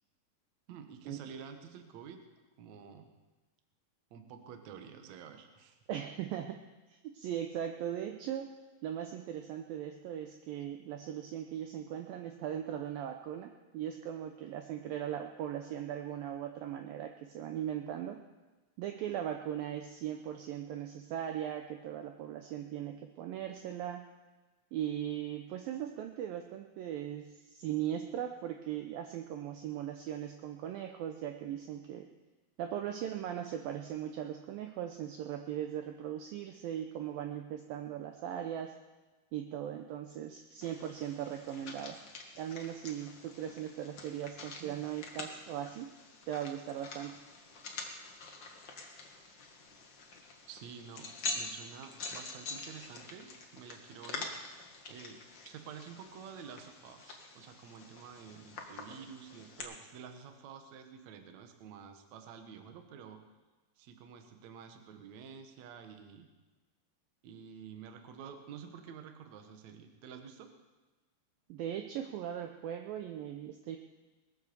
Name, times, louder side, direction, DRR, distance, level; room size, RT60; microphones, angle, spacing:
voice 1, 0.7-2.2 2.6-3.1 4.1-5.8 44.6-44.8 50.5-54.4 54.9-63.2 63.8-66.3 67.2-70.5, right 7 dB, 65° right, 6 dB, 1.9 m, -50 dB
voice 2, 5.9-6.6 7.0-8.5 8.8-18.2 18.8-24.1 24.7-32.1 32.6-38.7 39.3-42.0 42.4-45.9 46.3-47.2 71.5-73.8, right 10 dB, 80° right, 5 dB, 2.2 m, -39 dB
sound 1, 40.6-59.6, left 3 dB, 70° left, 1.1 m, -46 dB
20.0 x 8.3 x 7.0 m, 1.2 s
omnidirectional pair, 4.8 m